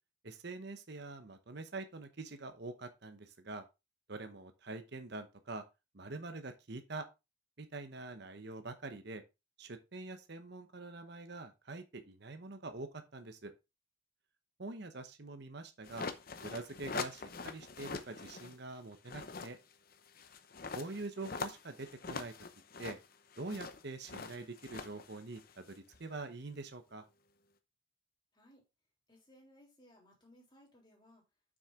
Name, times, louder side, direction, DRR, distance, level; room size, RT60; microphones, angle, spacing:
voice 1, 0.2-3.6 4.1-5.6 5.9-7.1 7.6-9.2 9.6-13.5 14.6-16.1 16.4-19.6 20.7-22.3 22.8-23.0 23.4-27.1, right 3 dB, 55° right, 8 dB, 0.9 m, -45 dB
sound 1, 15.8-18.6 18.9-26.0, left 4 dB, 45° left, 0.7 m, -44 dB
voice 2, 28.3-28.6 29.1-31.3, equal, 20° left, -2 dB, 3.3 m, -62 dB
7.3 x 6.4 x 3.7 m, 0.26 s
head